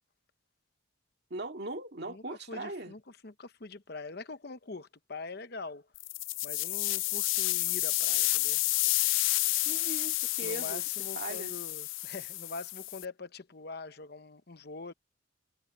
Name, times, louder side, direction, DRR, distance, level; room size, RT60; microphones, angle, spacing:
voice 1, 1.3-2.9 9.6-10.9 11.2-11.5, right 2 dB, 55° right, 2.2 m, -39 dB
voice 2, 2.1-5.9 6.4-8.6 10.4-14.9, left 3 dB, 50° left, 0.9 m, -44 dB
sound 1, 5.9-13.0, left 20 dB, 70° left, 0.4 m, -30 dB
head